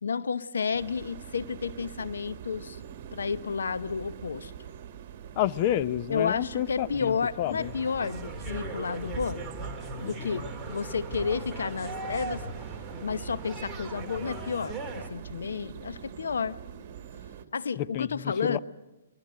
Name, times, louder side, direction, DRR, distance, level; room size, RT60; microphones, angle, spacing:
voice 1, 0.0-2.8 3.1-4.5 6.1-9.5 10.0-12.4 13.0-16.6 17.5-18.6, left 5 dB, 80° left, 14 dB, 1.0 m, -31 dB
sound 1, 0.7-17.5, right 9 dB, 40° right, 2.1 m, -44 dB
voice 2, 5.4-7.7 17.8-18.6, left 12 dB, 40° left, 15 dB, 0.7 m, -29 dB
sound 2, 7.6-15.1, right 2 dB, 10° right, 2.7 m, -38 dB
22.0 x 21.0 x 7.7 m, 1.0 s
hypercardioid pair, 140°, 0 cm